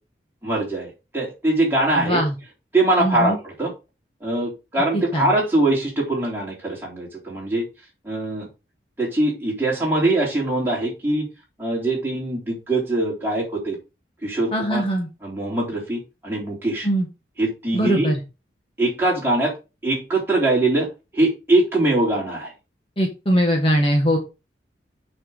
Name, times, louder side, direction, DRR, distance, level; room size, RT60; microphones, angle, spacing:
voice 1, 0.4-2.2 2.7-3.7 4.2-7.6 8.0-8.5 9.0-11.3 11.6-13.8 14.2-14.8 15.2-16.9 17.4-18.1 18.8-19.5 19.8-20.9 21.1-22.5, right 2 dB, 10° right, -5 dB, 3.8 m, -22 dB
voice 2, 2.0-2.3 3.0-3.4 4.9-5.3 14.5-15.1 16.8-17.1 17.7-18.2 23.0-24.2, equal, 30° left, 1 dB, 1.6 m, -21 dB
6.7 x 6.1 x 5.1 m, 0.28 s
head